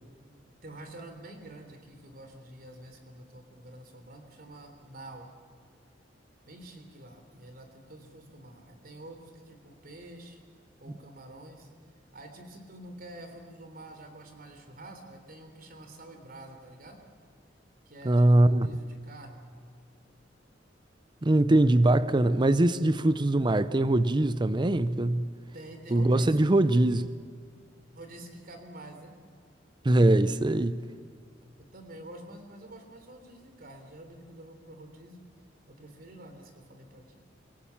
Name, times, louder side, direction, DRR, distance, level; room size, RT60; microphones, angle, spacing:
voice 1, 0.6-5.3 6.5-10.4 10.8-11.7 12.1-17.0 17.9-19.4 25.5-26.5 27.9-29.1 31.6-35.2 35.7-37.2, right 1 dB, 55° right, 3.4 m, -47 dB
voice 2, 18.0-18.7 21.2-25.3 25.9-27.2 29.8-30.8, right 1 dB, 25° right, 0.6 m, -22 dB
25.5 x 17.0 x 7.1 m
head